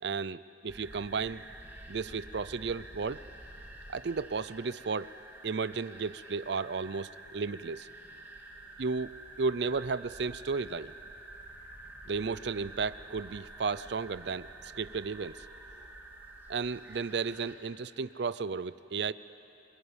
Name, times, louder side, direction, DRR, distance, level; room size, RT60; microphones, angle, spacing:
voice 1, 0.0-1.4 1.9-3.2 3.9-5.1 5.4-7.9 8.8-9.1 9.4-10.9 12.1-15.4 16.5-19.1, right 4 dB, 65° right, 16 dB, 0.5 m, -34 dB
sound 1, 0.7-17.6, right 2 dB, 10° right, 2.2 m, -49 dB
26.5 x 26.5 x 8.1 m, 2.9 s
head